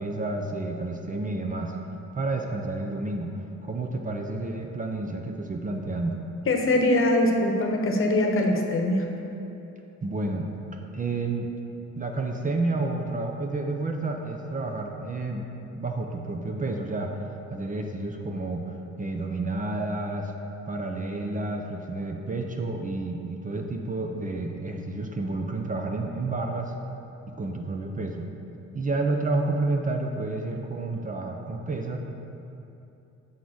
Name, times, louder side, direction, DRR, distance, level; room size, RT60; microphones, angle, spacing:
voice 1, 0.0-1.7 2.1-3.3 3.6-6.2 10.0-10.5 10.9-11.5 12.0-17.1 17.5-20.3 20.7-26.7 27.4-28.3 28.7-32.0, right 2 dB, 25° right, 3 dB, 0.6 m, -30 dB
voice 2, 6.5-9.1, left 1 dB, 45° left, 2 dB, 1.0 m, -22 dB
7.1 x 3.8 x 6.3 m, 2.8 s
cardioid pair, 90°, 30 cm